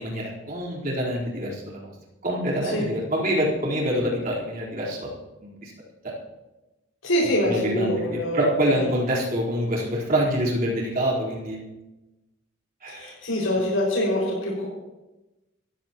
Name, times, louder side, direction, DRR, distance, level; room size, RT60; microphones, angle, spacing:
voice 1, 0.0-1.9 2.2-5.1 5.4-5.7 6.0-6.1 7.5-11.6 12.8-13.1, equal, 45° right, -4 dB, 4.3 m, -26 dB
voice 2, 7.0-8.9 12.9-14.6, equal, 80° left, -7 dB, 5.8 m, -25 dB
25.0 x 15.0 x 3.1 m, 1.1 s
head